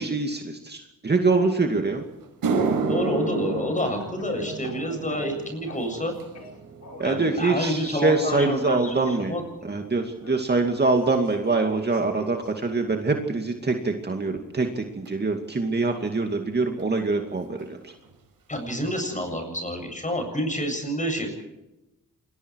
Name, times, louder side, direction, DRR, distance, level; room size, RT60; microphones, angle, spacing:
voice 1, 0.0-2.0 7.0-9.3 9.6-17.9, right 3 dB, 30° right, 4 dB, 2.4 m, -24 dB
sound 1, 1.7-1.8 2.2-10.7 11.0-11.5 12.2-12.3 15.1-15.2 16.8-16.9 17.1-17.3 17.6-18.1 18.5-18.6 19.2-19.3, right 4 dB, 80° right, 5.2 m, -32 dB
voice 2, 2.9-6.1 7.0-9.4 18.5-21.3, equal, 20° left, 5 dB, 7.8 m, -28 dB
Speech / Cough, 3.8-6.0 6.3-7.2 8.1-9.3 10.2-12.5, left 3 dB, 50° left, 5.7 m, -43 dB
27.5 x 22.0 x 4.8 m, 0.99 s
cardioid pair, 100°, 33 cm